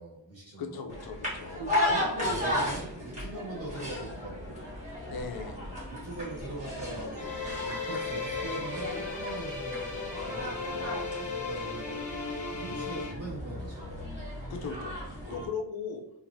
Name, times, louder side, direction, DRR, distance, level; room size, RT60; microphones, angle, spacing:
voice 1, 0.0-0.9 1.6-4.6 5.9-7.3 7.6-11.9 12.5-14.1, right 1 dB, 30° right, -5 dB, 1.4 m, -41 dB
voice 2, 0.6-1.6 5.1-5.8 14.5-16.0, left 5 dB, 60° left, 4 dB, 0.5 m, -38 dB
sound 1, 0.9-15.5, left 1 dB, 15° right, 1.2 m, -35 dB
sound 2, 7.2-13.1, left 4 dB, 15° left, 0.8 m, -36 dB
3.1 x 2.5 x 2.5 m, 0.80 s
wide cardioid pair, 170°, 43 cm